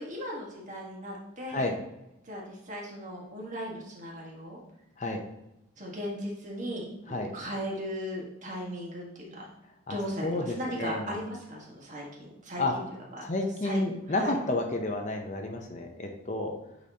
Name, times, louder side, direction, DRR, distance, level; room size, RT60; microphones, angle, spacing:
voice 1, 0.0-1.7 2.2-4.6 5.8-9.5 9.9-12.8 13.1-13.2 13.6-13.8 14.1-14.4, equal, 35° right, -2 dB, 1.6 m, -37 dB
voice 2, 10.2-11.0 12.6-12.7 13.3-16.5, left 2 dB, 35° left, 3 dB, 0.7 m, -30 dB
8.3 x 4.0 x 2.8 m, 0.90 s
head